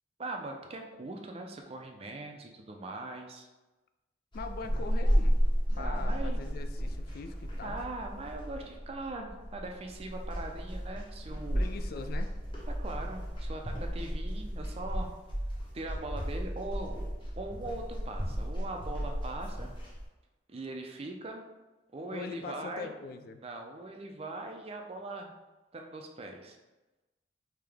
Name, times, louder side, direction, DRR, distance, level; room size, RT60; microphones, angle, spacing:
voice 1, 0.2-3.5 5.7-6.4 7.6-11.6 12.7-15.1 15.7-17.1 17.4-19.7 20.5-21.4 21.9-22.9 23.4-25.3 25.7-26.6, right 2 dB, 35° right, 3 dB, 0.4 m, -41 dB
voice 2, 4.3-5.4 5.8-7.8 11.5-12.3 22.1-23.4, left 4 dB, 55° left, 8 dB, 0.3 m, -42 dB
sound 1, 4.3-20.0, equal, 30° left, 0.9 m, -33 dB
3.6 x 2.8 x 3.4 m, 1.1 s
head